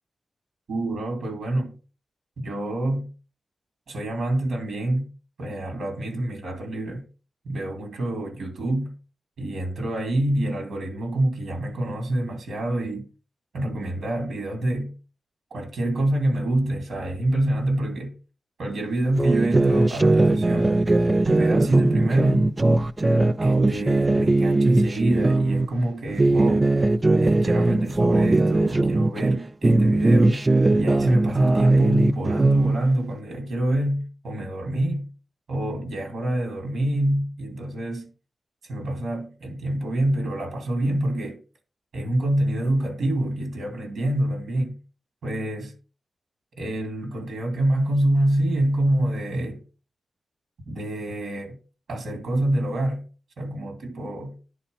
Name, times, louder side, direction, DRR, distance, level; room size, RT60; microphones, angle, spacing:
voice 1, 0.7-1.8 2.4-3.1 3.9-5.1 5.4-7.0 7.4-8.9 9.4-13.1 13.5-14.9 15.5-18.1 18.6-20.7 21.2-22.5 23.4-26.7 27.2-30.5 30.8-35.1 35.5-38.1 38.7-41.4 41.9-44.8 45.2-45.7 46.6-49.6 50.7-51.6 51.9-53.0 53.4-54.4, right 1 dB, 70° right, 2.8 m, -26 dB
sound 1, 19.2-25.7 26.1-29.4 29.6-32.8, right 2 dB, 25° right, 0.5 m, -20 dB
10.0 x 4.3 x 5.3 m
wide cardioid pair, 115°, 0 cm